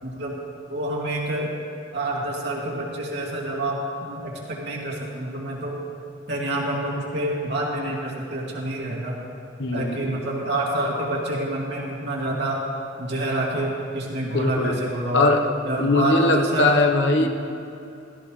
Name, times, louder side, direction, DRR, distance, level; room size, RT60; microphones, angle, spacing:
voice 1, 0.0-0.4 0.7-1.5 1.9-5.8 6.3-9.2 9.7-12.6 13.0-15.3 15.6-16.7 17.2-17.3, right 1 dB, 65° right, -3 dB, 2.6 m, -27 dB
voice 2, 9.6-10.1 14.3-14.7 15.1-15.4 15.8-17.3, left 2 dB, 70° left, 4 dB, 1.2 m, -20 dB
15.5 x 14.5 x 3.3 m, 2.8 s
head